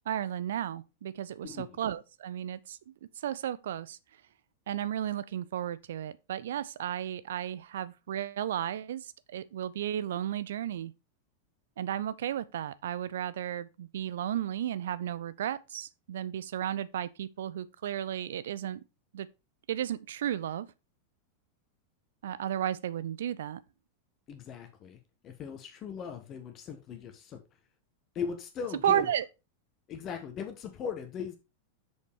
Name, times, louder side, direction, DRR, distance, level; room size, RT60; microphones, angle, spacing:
voice 1, 0.0-2.8 3.2-4.0 4.7-10.9 11.8-18.8 19.1-19.3 19.7-20.7 22.2-23.6 28.8-29.2, right 10 dB, 60° right, 0.5 m, -33 dB
voice 2, 1.4-1.8 24.3-27.4 28.1-29.1 29.9-31.4, left 7 dB, 30° left, 1.1 m, -39 dB
6.6 x 5.3 x 4.7 m
figure-of-eight pair, 90°, 0 cm